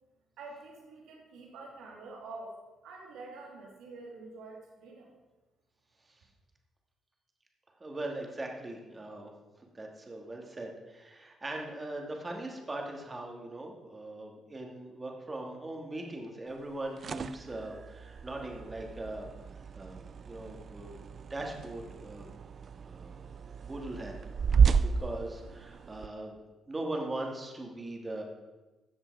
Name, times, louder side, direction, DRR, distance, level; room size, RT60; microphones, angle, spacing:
voice 1, 0.4-2.6 2.8-5.1, right 3 dB, 85° right, 0 dB, 2.9 m, -47 dB
voice 2, 7.8-9.3 9.7-19.3 19.7-21.0 21.3-22.3 22.8-23.3 23.6-24.2 24.6-26.4 26.7-28.2, right 2 dB, 25° right, 1 dB, 2.3 m, -40 dB
sound 1, 16.7-26.1, right 6 dB, 50° right, 0.4 m, -32 dB
13.5 x 7.3 x 4.9 m, 1.2 s
cardioid pair, 90°, 0 cm